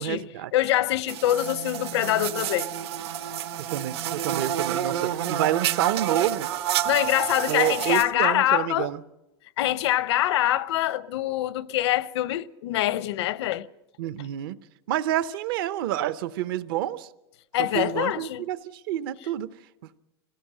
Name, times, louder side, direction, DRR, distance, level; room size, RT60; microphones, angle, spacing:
voice 1, 0.0-0.5 3.6-6.5 7.5-9.0 14.0-14.6 14.9-17.1 17.6-19.5, right 13 dB, 55° right, 0.7 m, -28 dB
voice 2, 0.5-2.7 6.8-8.9 9.6-13.7 17.5-18.4, left 14 dB, 75° left, 0.7 m, -24 dB
sound 1, 1.1-8.0, right 10 dB, 70° right, 1.2 m, -29 dB
21.5 x 17.5 x 7.6 m
supercardioid pair, 180°, 14 cm